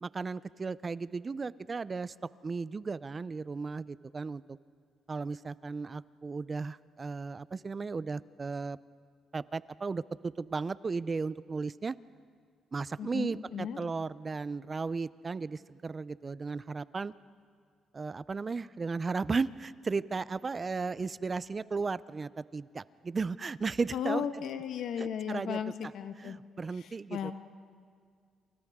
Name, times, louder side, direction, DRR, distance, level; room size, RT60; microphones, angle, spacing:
voice 1, 0.0-2.1 2.4-4.6 5.1-8.8 9.3-12.0 12.7-17.1 17.9-24.2 25.0-25.9 26.2-27.3, right 4 dB, 35° right, 18 dB, 0.5 m, -35 dB
voice 2, 13.0-13.8 23.9-26.4 26.8-27.3, left 8 dB, 75° left, 8 dB, 1.3 m, -35 dB
28.5 x 28.5 x 3.7 m, 2.1 s
cardioid pair, 90°, 0 cm